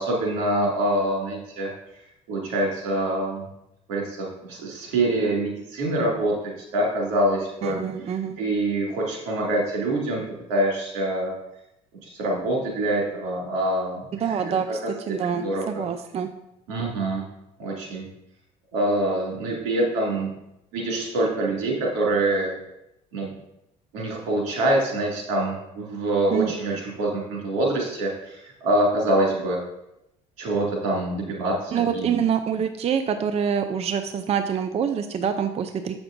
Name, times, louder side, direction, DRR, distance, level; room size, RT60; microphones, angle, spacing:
voice 1, 0.0-2.0 2.3-3.5 3.9-6.3 6.7-11.3 12.0-14.5 14.8-15.8 16.7-17.2 17.6-18.1 18.7-20.3 20.7-22.5 23.1-23.3 23.9-29.6 30.4-32.2, right 1 dB, 90° right, -3 dB, 2.2 m, -25 dB
voice 2, 7.6-8.4 14.2-14.6 15.1-16.3 26.3-26.5 31.7-36.0, right 7 dB, 40° right, 9 dB, 0.4 m, -25 dB
7.8 x 6.1 x 2.6 m, 0.86 s
supercardioid pair, 95°, 17 cm